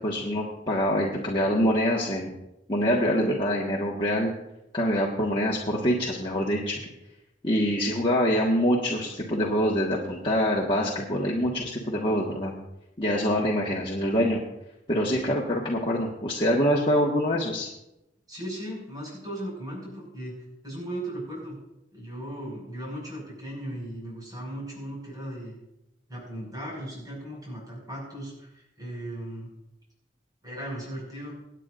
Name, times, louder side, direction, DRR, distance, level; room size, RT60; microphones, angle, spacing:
voice 1, 0.0-2.4 2.7-4.3 4.7-6.7 7.4-12.5 13.0-14.4 14.9-17.7, equal, 30° left, -4 dB, 1.5 m, -25 dB
voice 2, 18.3-20.3 20.6-21.6 21.9-25.6 26.1-29.5 30.4-31.4, right 1 dB, 20° right, -4 dB, 5.5 m, -37 dB
25.5 x 9.1 x 2.6 m, 0.90 s
head